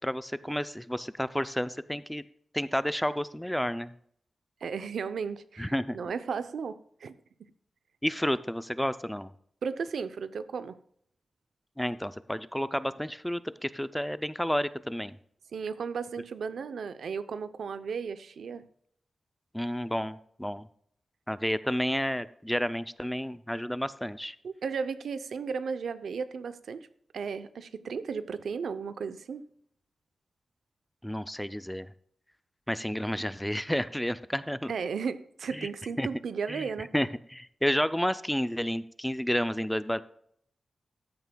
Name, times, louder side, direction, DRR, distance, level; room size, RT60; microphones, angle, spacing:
voice 1, 0.0-2.2 2.5-3.9 5.6-6.0 8.0-9.3 11.8-15.2 19.5-20.7 21.3-24.4 31.0-31.9 32.7-34.7 35.5-35.7 36.0-36.1 36.5-40.0, equal, 5° left, 14 dB, 0.4 m, -31 dB
voice 2, 4.6-7.1 9.6-10.8 15.5-18.6 24.4-26.9 27.1-29.4 34.7-36.9, right 5 dB, 85° right, 13 dB, 0.6 m, -35 dB
14.0 x 9.4 x 2.3 m, 0.65 s
wide cardioid pair, 135°, 0 cm